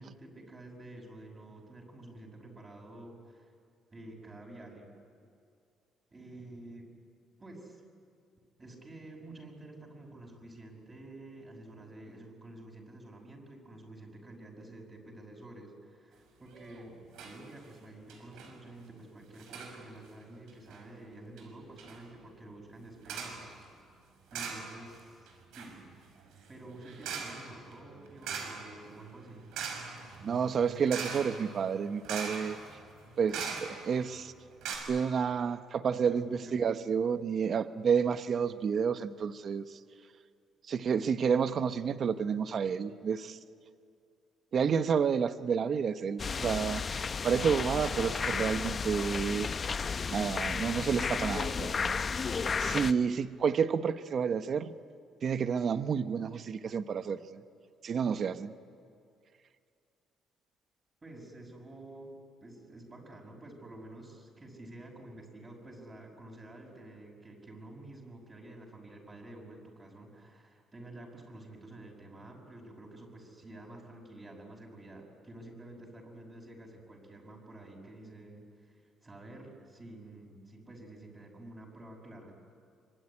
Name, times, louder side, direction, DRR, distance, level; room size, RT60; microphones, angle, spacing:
voice 1, 0.0-3.5 3.9-4.9 6.1-6.9 7.4-7.8 8.6-17.0 17.2-23.5 24.3-25.3 25.5-25.9 26.5-29.5 33.1-33.5 36.0-36.5 61.0-82.4, right 1 dB, 20° right, 0 dB, 5.8 m, -49 dB
sound 1, 16.5-16.8 17.1-17.4 17.7-17.8 18.1-18.5 19.4-19.8 20.5-20.8 21.4-21.5 21.8-22.0 23.0-23.4 24.3-25.0 25.3-34.0 34.3-34.4 34.6-34.8, right 6 dB, 85° right, 5.7 m, -41 dB
voice 2, 30.2-32.6 33.2-33.3 33.8-34.3 34.9-39.8 40.6-43.4 44.5-46.8 47.2-49.5 50.1-52.0 52.6-54.7 55.2-57.4 57.8-58.5, right 6 dB, 45° right, 12 dB, 1.0 m, -30 dB
sound 2, 46.2-52.9, left 5 dB, 35° left, 0.7 m, -33 dB
25.0 x 24.0 x 9.9 m, 2.3 s
cardioid pair, 120°, 0 cm